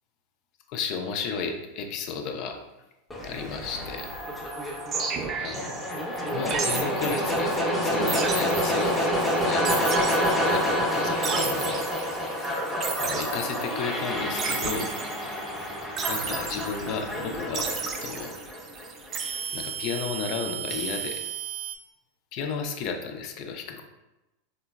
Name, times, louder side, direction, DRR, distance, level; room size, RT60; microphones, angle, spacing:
voice 1, 0.7-2.6 3.2-4.2 5.4-5.9 6.3-9.9 10.4-11.9 12.2-12.4 13.0-14.9 16.1-17.7 18.0-18.4 19.5-21.2 22.3-23.8, left 5 dB, 50° left, 4 dB, 0.4 m, -33 dB
sound 1, 3.1-19.1, equal, 10° left, 0.7 m, -28 dB
sound 2, 4.0-21.8, right 6 dB, 35° right, 0.3 m, -34 dB
3.7 x 2.0 x 2.3 m, 1.0 s
hypercardioid pair, 95°, 0 cm